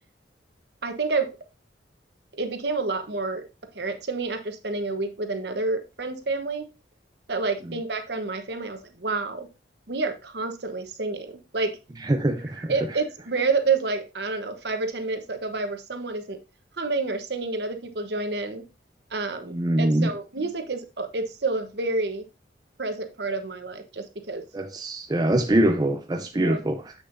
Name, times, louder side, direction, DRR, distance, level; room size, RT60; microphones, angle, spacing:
voice 1, 0.8-1.3 2.3-3.4 3.7-6.6 7.3-9.5 9.9-11.7 12.7-16.4 16.8-18.6 19.1-22.2 22.8-24.4 26.4-26.6, right 3 dB, 65° right, 1.0 m, -29 dB
voice 2, 12.0-12.9 19.5-20.1 24.5-26.9, right 1 dB, 20° right, 0.4 m, -24 dB
7.7 x 6.6 x 2.6 m
head